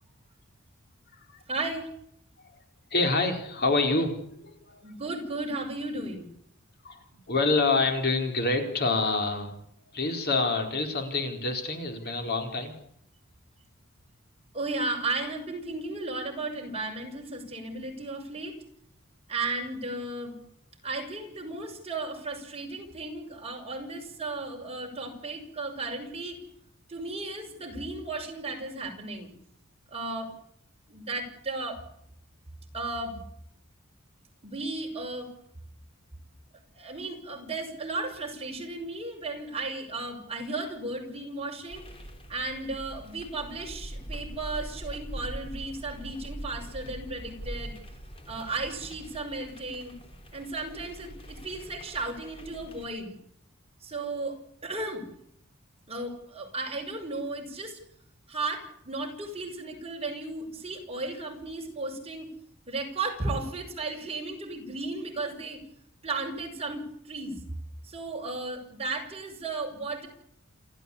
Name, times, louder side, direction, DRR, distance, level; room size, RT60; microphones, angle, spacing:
voice 1, 1.5-1.9 4.8-6.3 14.5-18.6 19.3-20.4 20.8-26.4 26.9-29.3 29.9-30.3 30.9-31.8 32.7-33.2 34.4-35.3 36.7-41.9 42.3-47.7 48.3-49.9 50.3-53.1 53.8-55.0 55.9-57.8 58.3-62.3 62.7-65.6 66.0-67.4 67.8-70.1, right 2 dB, 30° right, 2 dB, 6.2 m, -35 dB
voice 2, 2.9-4.8 6.8-9.6 9.9-12.8, left 3 dB, 50° left, 4 dB, 4.4 m, -27 dB
sound 1, 41.7-52.9, right 1 dB, 25° left, 3.7 m, -43 dB
28.5 x 13.5 x 8.6 m, 0.70 s
head